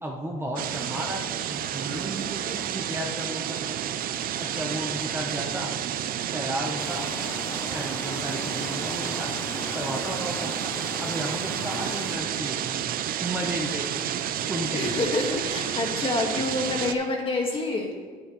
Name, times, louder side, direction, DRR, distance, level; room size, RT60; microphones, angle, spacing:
voice 1, 0.0-3.7 4.4-5.7 6.3-7.1 7.7-9.3 9.7-10.5 11.0-12.6 13.2-14.1 14.5-14.9, right 1 dB, 15° right, 0 dB, 1.0 m, -33 dB
sound 1, 0.6-16.9, right 10 dB, 60° right, 0.5 m, -30 dB
sound 2, 6.8-12.2, left 2 dB, 15° left, 0.8 m, -37 dB
voice 2, 14.7-17.9, left 2 dB, 30° left, 0 dB, 1.9 m, -27 dB
9.9 x 9.6 x 3.2 m, 1.5 s
cardioid pair, 110°, 17 cm